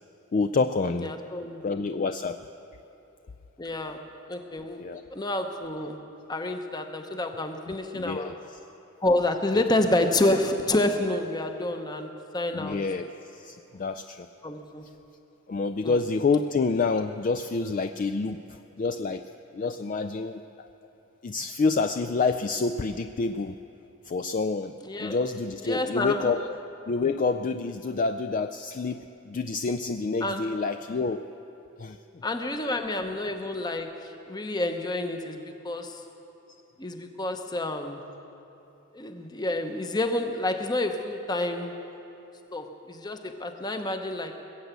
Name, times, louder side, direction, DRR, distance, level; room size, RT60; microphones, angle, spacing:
voice 1, 0.3-1.1 1.6-2.5 4.8-5.0 7.7-8.3 9.5-9.6 12.5-14.3 15.5-19.2 19.5-20.7 21.2-23.5 24.0-24.7 25.0-26.6 26.9-31.2 31.8-32.0, left 4 dB, 40° left, 8 dB, 0.3 m, -28 dB
voice 2, 1.0-1.6 3.6-4.9 5.1-6.0 6.3-8.3 9.0-12.8 13.7-13.8 14.4-14.9 15.8-16.0 24.8-25.2 25.6-26.3 30.2-30.5 32.2-36.0 36.8-38.0 38.9-41.8 42.5-44.4, left 1 dB, 20° left, 6 dB, 0.8 m, -29 dB
21.0 x 8.1 x 8.1 m, 3.0 s
head